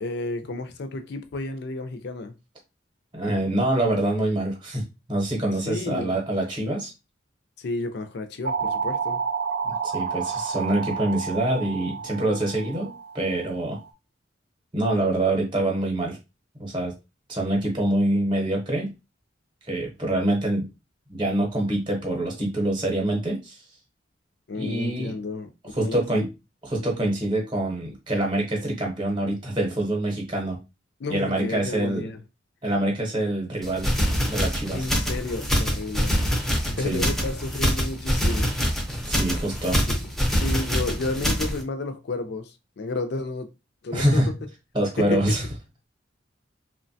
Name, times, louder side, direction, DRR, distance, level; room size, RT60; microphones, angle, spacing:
voice 1, 0.0-2.4 5.6-6.2 7.6-9.2 24.5-26.3 31.0-32.2 34.7-36.1 36.6-38.5 39.9-40.0 40.3-43.5 43.8-44.3 45.0-45.4, left 2 dB, 60° left, 0.4 m, -32 dB
voice 2, 3.1-4.8 5.1-6.9 9.6-13.8 14.7-16.2 16.6-16.9 17.3-18.9 19.7-20.7 21.1-23.6 24.5-25.1 25.7-26.3 26.6-30.6 31.1-32.1 32.6-33.9 34.3-34.9 36.7-37.0 39.1-39.8 43.9-44.3 44.7-45.4, right 1 dB, 25° right, 0.8 m, -25 dB
sound 1, 8.5-13.9, right 6 dB, 60° right, 0.4 m, -30 dB
sound 2, 33.6-41.6, equal, ahead, 0.5 m, -25 dB
3.0 x 2.1 x 2.6 m
head